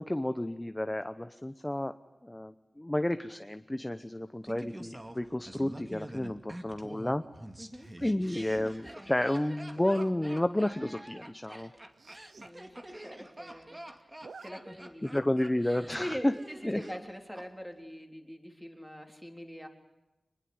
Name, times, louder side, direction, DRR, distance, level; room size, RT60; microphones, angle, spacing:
voice 1, 0.0-2.0 2.2-7.2 8.0-11.7 15.0-16.3 16.6-16.8, left 1 dB, 15° left, 10 dB, 0.9 m, -31 dB
Laughter, 4.5-17.5 17.7-17.8, right 1 dB, 20° right, 2.3 m, -47 dB
voice 2, 7.6-7.9 8.3-8.6 9.0-9.1 12.4-14.1 14.4-15.2 15.9-19.7, equal, 5° right, 4 dB, 3.8 m, -43 dB
Zipper (clothing), 7.8-8.2 9.7-10.1 10.7-10.9 11.2-11.3 11.5-11.6 11.9-12.5 12.9-13.0 13.1-13.7 14.0-14.5 14.9-15.0 16.3-16.7, right 4 dB, 90° right, 0.9 m, -51 dB
25.0 x 21.0 x 8.0 m, 0.98 s
wide cardioid pair, 95°, 0 cm